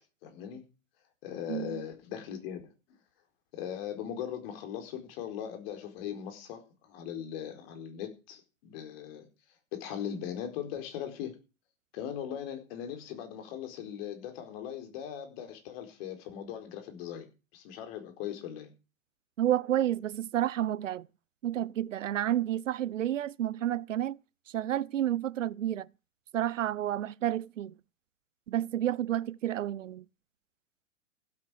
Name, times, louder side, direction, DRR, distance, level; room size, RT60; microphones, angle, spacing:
voice 1, 0.2-0.6 1.2-2.7 3.5-9.3 9.7-11.3 11.9-17.3 17.5-18.7, left 9 dB, 50° left, 4.5 m, -39 dB
voice 2, 1.5-1.8 19.4-21.1 21.4-24.2 24.5-25.9 26.3-27.7 28.5-30.0, right 12 dB, 75° right, 0.7 m, -30 dB
15.5 x 8.8 x 6.3 m
hypercardioid pair, 110°, 38 cm